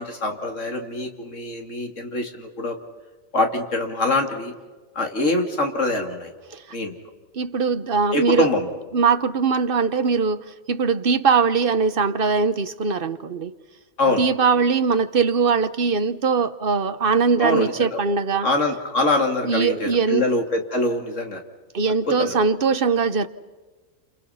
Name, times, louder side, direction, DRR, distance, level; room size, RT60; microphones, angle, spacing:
voice 1, 0.0-2.8 3.3-4.5 4.9-6.3 6.7-6.9 8.1-8.7 14.0-14.2 17.4-18.0 18.4-21.4 22.1-22.4, left 2 dB, 65° left, 3.0 m, -24 dB
voice 2, 7.3-8.5 8.9-13.5 14.2-18.5 19.4-20.2 21.7-23.3, right 5 dB, 45° right, 1.1 m, -21 dB
29.0 x 28.0 x 5.7 m
omnidirectional pair, 1.4 m